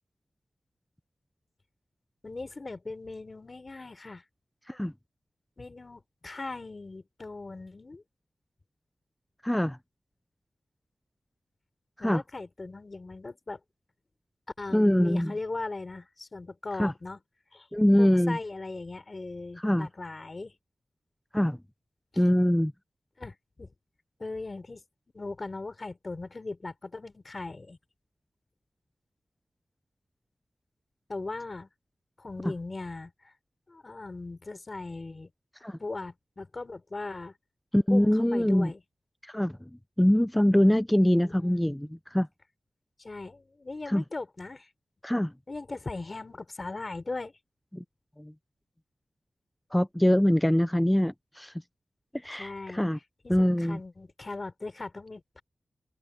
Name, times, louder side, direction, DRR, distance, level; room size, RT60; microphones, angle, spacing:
voice 1, 2.2-4.2 5.6-8.0 12.0-13.6 14.6-17.2 17.5-17.7 18.0-20.6 22.1-22.2 23.2-23.7 24.2-24.8 25.1-27.8 31.1-31.7 32.2-33.3 33.7-35.3 35.8-37.3 37.9-38.8 41.3-41.7 43.0-44.7 45.5-47.3 52.4-52.8 53.2-55.4, left 3 dB, 40° left, 3.7 m, -39 dB
voice 2, 9.4-9.8 12.0-12.2 14.7-15.3 16.8-16.9 17.7-18.4 19.6-19.9 21.3-21.6 22.2-22.7 32.4-32.5 35.6-35.8 37.7-38.7 39.3-39.6 40.0-42.3 43.9-44.0 45.0-45.3 47.7-47.8 48.2-48.3 49.7-51.5 52.2-53.0 53.3-53.8, equal, 5° left, 0.4 m, -23 dB
wide cardioid pair, 85°, 0 cm